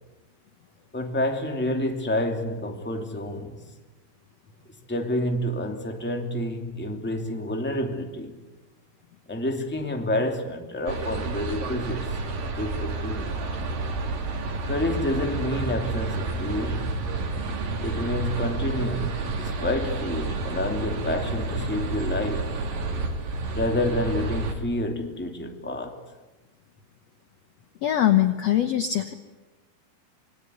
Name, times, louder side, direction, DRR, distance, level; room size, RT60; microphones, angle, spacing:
voice 1, 0.9-3.7 4.7-8.4 9.3-13.4 14.7-17.0 17.8-22.5 23.5-26.0, left 1 dB, 5° left, 1.7 m, -29 dB
sound 1, 10.9-24.5, right 3 dB, 60° right, 4.5 m, -30 dB
voice 2, 27.8-29.1, left 12 dB, 75° left, 1.5 m, -22 dB
27.0 x 22.5 x 9.6 m
omnidirectional pair, 4.7 m